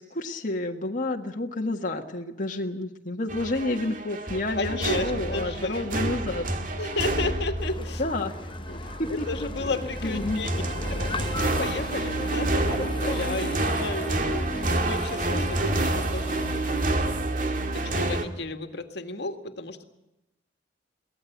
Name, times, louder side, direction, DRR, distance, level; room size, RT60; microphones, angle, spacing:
voice 1, 0.0-6.4 8.0-8.3 9.0-9.2 10.0-10.5, left 2 dB, 45° left, 1 dB, 1.7 m, -29 dB
sound 1, 3.3-18.3, right 2 dB, 50° right, 2.2 m, -29 dB
voice 2, 4.5-5.9 6.8-8.1 8.7-8.8 9.1-10.6 10.9-16.9 17.7-19.8, left 3 dB, 70° left, 6 dB, 2.0 m, -33 dB
sound 2, 7.6-16.9, left 3 dB, 30° left, 0.8 m, -38 dB
23.0 x 17.5 x 8.1 m, 0.95 s
head